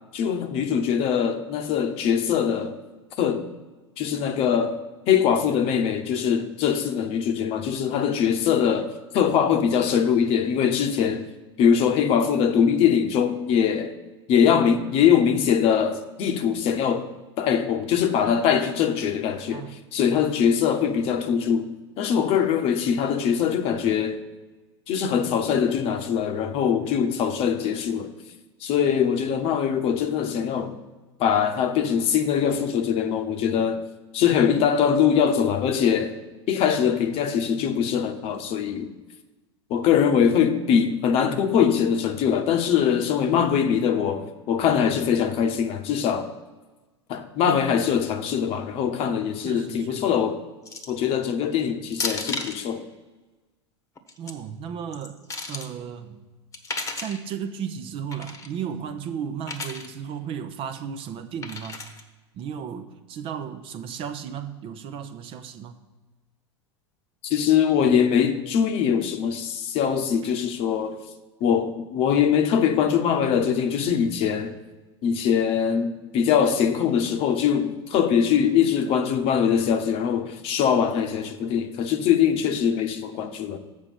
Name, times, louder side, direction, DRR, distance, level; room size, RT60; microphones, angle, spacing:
voice 1, 0.1-2.8 3.2-3.5 4.0-4.8 5.1-11.3 11.6-13.9 14.3-17.1 17.4-24.2 24.9-28.1 28.6-30.8 31.2-33.9 34.1-36.2 36.5-38.9 39.7-46.3 47.1-50.4 50.9-52.9 67.2-71.0 71.4-74.6 75.0-83.6, left 8 dB, 40° left, 1.0 m, -22 dB
voice 2, 49.4-50.1 54.2-55.2 55.5-56.2 57.0-61.8 62.3-65.8, right 8 dB, 40° right, 0.8 m, -34 dB
sound 1, 50.7-51.0 51.9-52.6 54.0-54.3 54.9-55.7 56.5-57.2 58.1-58.5 59.4-59.9 61.4-62.0, left 3 dB, 20° left, 1.2 m, -33 dB
7.4 x 4.9 x 7.1 m
figure-of-eight pair, 85°, 15 cm